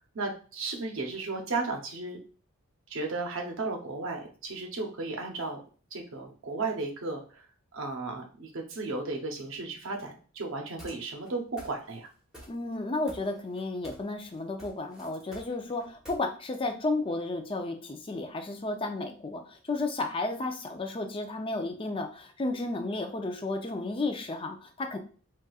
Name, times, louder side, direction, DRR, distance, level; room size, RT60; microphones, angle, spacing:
voice 1, 0.1-2.2 2.9-5.6 5.9-7.5 7.7-12.1, right 3 dB, 65° right, 2 dB, 0.7 m, -34 dB
sound 1, 10.8-11.3 11.6-12.1 12.3-12.8 13.1-14.1 14.4-16.2, equal, 5° right, 1.0 m, -48 dB
voice 2, 12.5-25.0, left 2 dB, 25° left, 5 dB, 0.4 m, -33 dB
4.1 x 2.4 x 2.3 m, 0.38 s
head